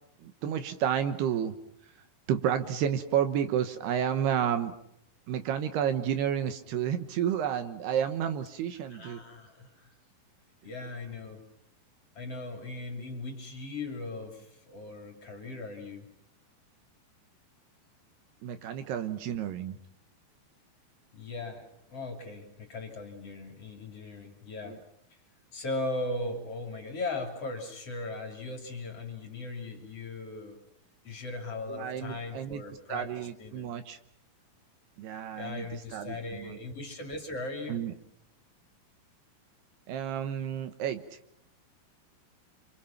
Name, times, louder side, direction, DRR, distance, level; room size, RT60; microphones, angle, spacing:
voice 1, 0.2-1.6 2.3-4.7 5.3-9.2 18.4-19.8 24.6-24.8 31.7-32.6 32.9-34.0 35.0-36.6 37.7-37.9 39.9-41.2, right 9 dB, 70° right, 9 dB, 2.9 m, -31 dB
voice 2, 8.9-9.9 10.6-11.4 12.2-16.1 21.1-24.8 25.5-30.6 31.0-33.1 33.4-33.8 35.3-37.8, left 2 dB, 35° left, 2 dB, 3.5 m, -38 dB
29.5 x 26.0 x 5.9 m, 0.74 s
omnidirectional pair, 5.2 m